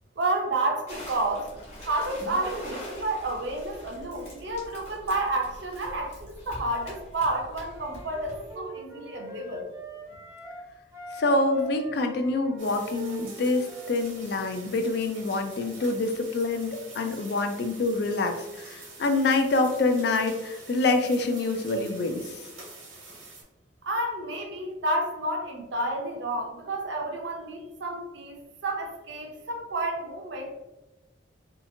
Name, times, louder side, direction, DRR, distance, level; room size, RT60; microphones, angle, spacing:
voice 1, 0.2-1.5 1.8-9.7 23.9-30.5, right 2 dB, 65° right, 1 dB, 0.5 m, -30 dB
sound 1, 0.9-8.5, equal, 35° left, 1.1 m, -43 dB
Wind instrument woodwind instrument, 7.7-10.6 10.9-14.1, right 1 dB, 15° right, 0.5 m, -42 dB
voice 2, 11.1-22.4, left 2 dB, 55° left, 6 dB, 0.3 m, -26 dB
sound 2, 12.6-23.4, right 3 dB, 90° right, 1.1 m, -46 dB
2.7 x 2.4 x 2.6 m, 1.0 s
head